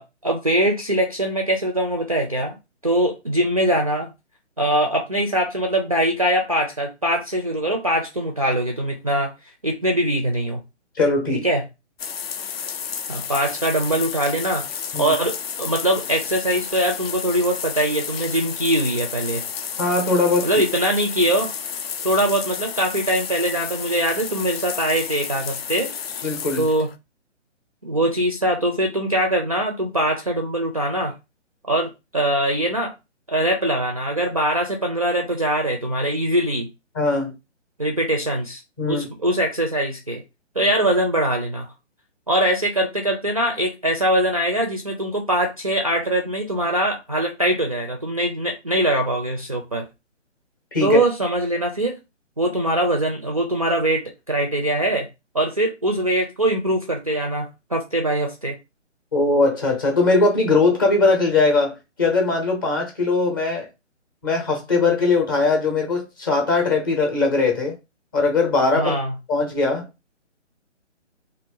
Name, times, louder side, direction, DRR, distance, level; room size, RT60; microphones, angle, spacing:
voice 1, 0.0-2.6 2.8-4.1 4.6-9.3 9.6-10.6 11.3-11.7 13.1-14.7 15.0-19.4 20.4-21.5 22.0-25.9 26.6-26.9 27.8-31.1 31.7-32.9 33.3-36.7 37.8-38.6 38.9-40.2 40.6-41.7 42.3-49.9 50.8-51.9 52.4-55.1 55.3-58.6 68.7-69.2, right 1 dB, 30° right, 0.4 m, -22 dB
voice 2, 11.0-11.4 14.9-15.1 19.8-20.5 26.2-26.7 36.9-37.3 38.8-39.1 50.7-51.0 59.1-63.7 64.2-67.8 68.1-69.0 69.3-69.9, left 3 dB, 20° left, 0.6 m, -20 dB
sound 1, 12.0-26.9, left 7 dB, 55° left, 0.4 m, -31 dB
2.6 x 2.5 x 3.6 m
figure-of-eight pair, 150°, 37 cm